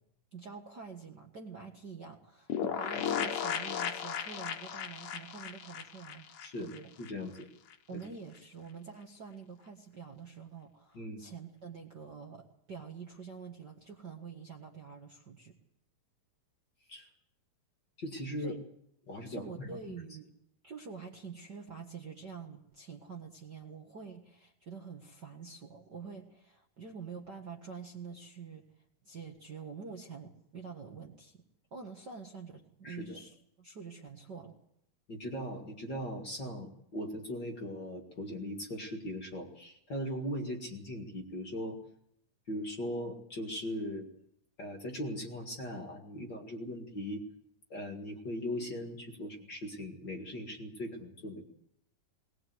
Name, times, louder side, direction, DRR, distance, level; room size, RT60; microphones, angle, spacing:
voice 1, 0.3-6.3 6.6-6.9 7.9-15.6 18.4-18.6 19.2-20.3 20.6-28.7 29.0-31.4 31.7-34.6, right 5 dB, 40° right, 1 dB, 1.6 m, -47 dB
sound 1, 2.5-7.1 7.4-7.5 7.7-7.8, left 8 dB, 70° left, 2.8 m, -35 dB
voice 2, 7.0-7.5 7.9-8.0 10.9-11.2 16.9-17.1 18.0-18.6 19.1-19.9 32.8-33.2 35.1-41.8 42.5-44.1 44.6-47.3 47.7-51.5, equal, 35° left, 3 dB, 2.3 m, -39 dB
21.0 x 20.0 x 7.9 m, 0.75 s
omnidirectional pair, 4.0 m